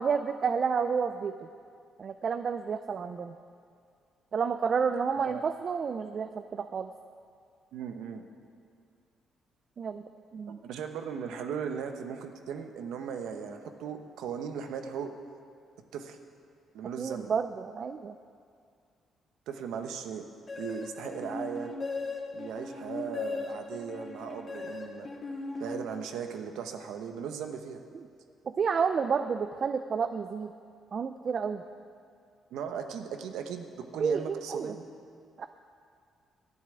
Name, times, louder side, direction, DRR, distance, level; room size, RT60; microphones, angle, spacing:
voice 1, 0.0-1.3 2.0-3.3 4.3-6.9 9.8-10.6 17.0-18.1 27.9-28.0 28.5-30.5 30.9-31.6 34.0-34.7 35.4-35.5, right 6 dB, 50° right, 9 dB, 0.4 m, -30 dB
voice 2, 7.7-8.2 10.5-15.1 15.9-16.2 16.7-17.3 19.5-20.2 20.6-21.7 22.3-25.1 25.6-27.8 32.5-34.8, right 7 dB, 85° right, 6 dB, 1.0 m, -37 dB
sound 1, 20.5-26.3, left 3 dB, 35° left, 2.1 m, -38 dB
12.0 x 7.4 x 9.1 m, 2.3 s
cardioid pair, 90°, 0 cm